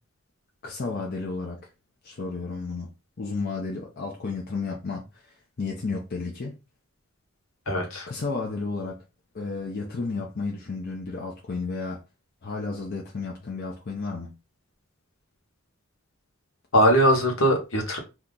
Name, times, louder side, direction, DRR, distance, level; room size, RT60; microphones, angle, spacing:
voice 1, 0.6-1.6 2.0-2.9 3.2-6.5 8.1-9.0 9.3-12.0 12.4-14.4, left 3 dB, 50° left, 0.6 m, -32 dB
voice 2, 7.7-8.1 16.7-18.0, equal, 70° left, 1.0 m, -21 dB
2.8 x 2.4 x 3.7 m
head